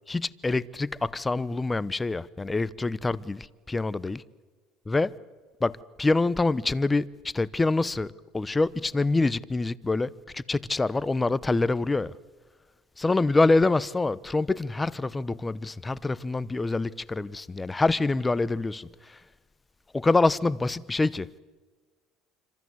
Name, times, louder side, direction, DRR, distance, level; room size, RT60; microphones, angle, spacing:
voice 1, 0.1-4.2 4.9-5.1 5.6-7.1 7.3-12.1 13.0-19.2 19.9-21.4, left 3 dB, 15° left, 0.9 m, -26 dB
26.5 x 25.5 x 8.0 m
supercardioid pair, 100°, 0 cm